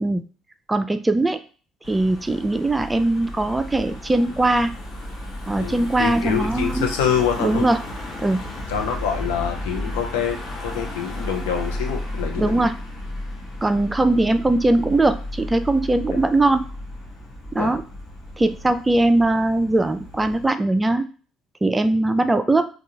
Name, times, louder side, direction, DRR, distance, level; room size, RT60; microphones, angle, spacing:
voice 1, 0.7-1.4 1.9-4.7 5.5-6.9 7.4-7.8 8.2-8.4 12.4-12.8 13.6-16.6 17.5-17.8 18.4-21.0 21.6-22.7, right 2 dB, 15° right, 10 dB, 0.3 m, -20 dB
Car passing by / Engine, 1.8-20.5, left 1 dB, 50° left, 1.1 m, -33 dB
voice 2, 5.6-7.7 8.7-12.5 16.1-16.2 17.6-17.7, left 8 dB, 70° left, 2 dB, 0.6 m, -26 dB
3.5 x 2.3 x 2.8 m, 0.39 s
figure-of-eight pair, 50°, 0 cm